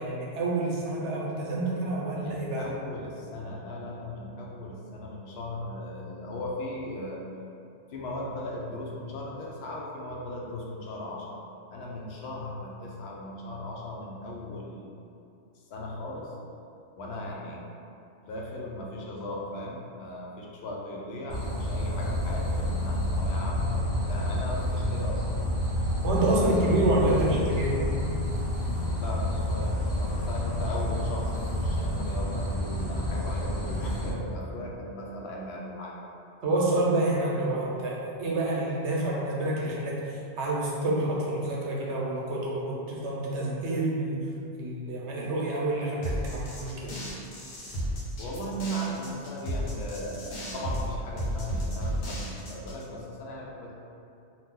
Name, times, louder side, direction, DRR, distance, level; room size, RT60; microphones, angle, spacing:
voice 1, 0.0-2.7 26.0-27.8 36.4-44.2 44.6-46.9, right 1 dB, 85° right, -5 dB, 1.0 m, -28 dB
voice 2, 2.2-7.2 7.9-11.4 11.7-14.9 15.5-16.3 17.0-17.6 18.2-25.3 26.3-27.2 28.9-36.0 48.2-53.7, left 1 dB, 70° left, -2 dB, 0.8 m, -37 dB
sound 1, 21.3-34.1, left 1 dB, 15° left, 0.9 m, -29 dB
sound 2, 46.0-52.8, equal, 90° left, 1.1 m, -33 dB
2.7 x 2.4 x 3.6 m, 2.6 s
omnidirectional pair, 1.1 m